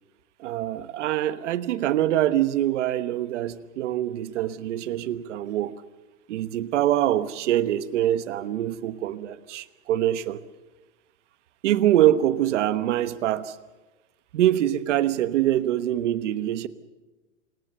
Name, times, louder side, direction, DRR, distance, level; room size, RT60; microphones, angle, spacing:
voice 1, 0.4-5.7 6.3-10.4 11.6-13.6 14.3-16.7, right 12 dB, 55° right, 1.2 m, -24 dB
26.5 x 21.5 x 6.9 m
supercardioid pair, 165°, 42 cm